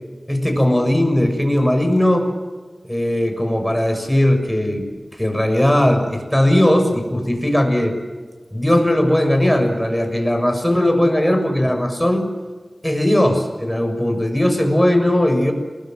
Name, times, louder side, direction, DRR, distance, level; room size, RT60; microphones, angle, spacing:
voice 1, 0.3-2.3 2.9-4.8 5.1-7.9 8.5-12.3 12.8-15.5, left 1 dB, 5° left, 5 dB, 6.6 m, -18 dB
28.5 x 21.0 x 7.7 m, 1.4 s
wide cardioid pair, 55°, 0 cm